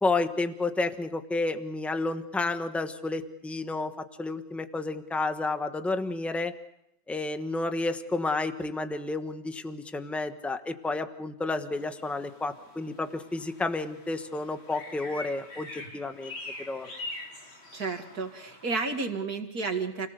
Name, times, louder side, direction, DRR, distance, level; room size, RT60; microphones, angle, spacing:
voice 1, 0.0-6.5 7.1-16.9, left 3 dB, ahead, 7 dB, 0.7 m, -31 dB
sound 1, 11.8-19.1, left 2 dB, 90° left, 4.7 m, -44 dB
voice 2, 17.7-20.1, right 4 dB, 50° right, 4 dB, 2.6 m, -31 dB
29.5 x 19.0 x 6.7 m, 0.80 s
omnidirectional pair, 2.1 m